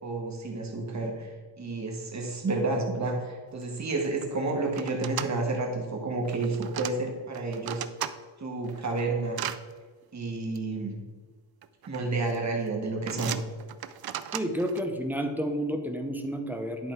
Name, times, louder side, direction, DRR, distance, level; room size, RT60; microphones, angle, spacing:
voice 1, 0.0-7.8 8.4-9.4 10.1-10.9 11.9-13.4, right 3 dB, 35° right, 1 dB, 1.6 m, -30 dB
sound 1, 3.6-3.7 3.9-4.3 4.7-5.3 6.2-6.9 7.3-8.1 8.6-9.6 10.6-10.7 11.6-12.0 12.3-12.6 13.1-14.8, right 11 dB, 55° right, 0.5 m, -36 dB
voice 2, 14.3-16.9, equal, 5° right, 5 dB, 0.6 m, -30 dB
11.0 x 3.9 x 4.5 m, 1.4 s
wide cardioid pair, 160°, 45 cm